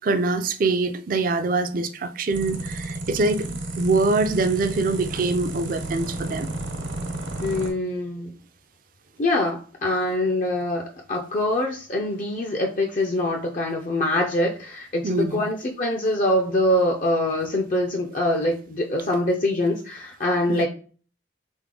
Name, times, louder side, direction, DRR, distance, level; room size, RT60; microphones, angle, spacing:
voice 1, 0.0-6.5 15.0-15.4 20.5-20.7, right 3 dB, 45° right, 0.4 m, -24 dB
sound 1, 2.3-7.7, right 2 dB, 75° right, 1.1 m, -32 dB
voice 2, 7.4-8.3 9.2-20.7, left 1 dB, 45° left, 0.5 m, -24 dB
3.6 x 3.6 x 3.7 m
head